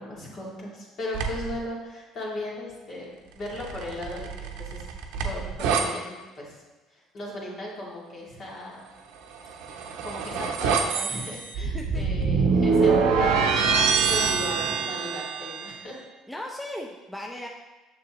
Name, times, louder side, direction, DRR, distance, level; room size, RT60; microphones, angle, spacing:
voice 1, 0.0-4.9 5.2-6.6 6.9-8.8 9.7-16.0, left 1 dB, 55° left, -4 dB, 2.4 m, -37 dB
sound 1, 1.1-1.6 3.5-5.9 9.4-15.7, right 5 dB, 75° right, 0.7 m, -25 dB
voice 2, 16.3-17.5, left 1 dB, 10° left, 0 dB, 0.7 m, -36 dB
6.8 x 6.7 x 3.0 m, 1.2 s
supercardioid pair, 75°, 0 cm